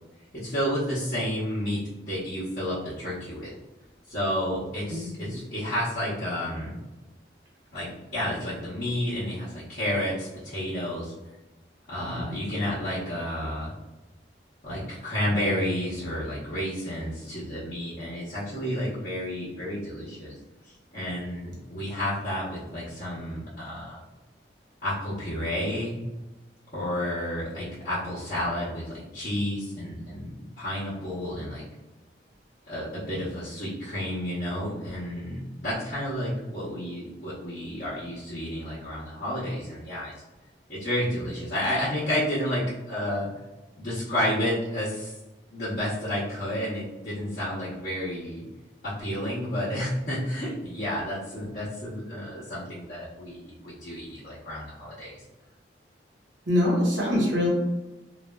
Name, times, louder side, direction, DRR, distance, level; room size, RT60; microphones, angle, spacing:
voice 1, 0.3-3.5 4.1-6.8 7.7-11.1 11.9-13.7 14.6-20.3 20.6-24.0 24.8-26.0 26.7-31.6 32.7-40.1 40.7-43.3 43.8-45.2 45.5-48.4 48.8-55.2, equal, 45° left, -12 dB, 0.8 m, -31 dB
voice 2, 4.9-5.4 12.1-12.4 56.5-57.5, left 1 dB, 90° right, -4 dB, 1.0 m, -25 dB
3.2 x 2.3 x 2.2 m, 1.1 s
head